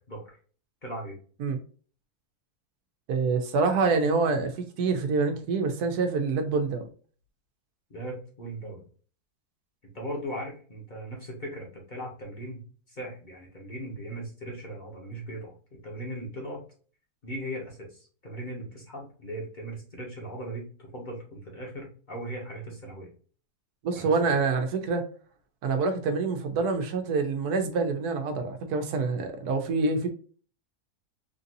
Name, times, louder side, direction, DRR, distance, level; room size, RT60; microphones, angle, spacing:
voice 1, 0.1-0.4 0.8-1.2 7.9-8.8 9.8-12.6 12.9-16.6 17.2-23.1 23.9-24.1, right 1 dB, 35° left, 1.1 m, -38 dB
voice 2, 3.1-6.8 23.8-25.0 25.6-30.1, right 4 dB, 80° right, 1.2 m, -26 dB
3.7 x 2.6 x 2.6 m
omnidirectional pair, 1.6 m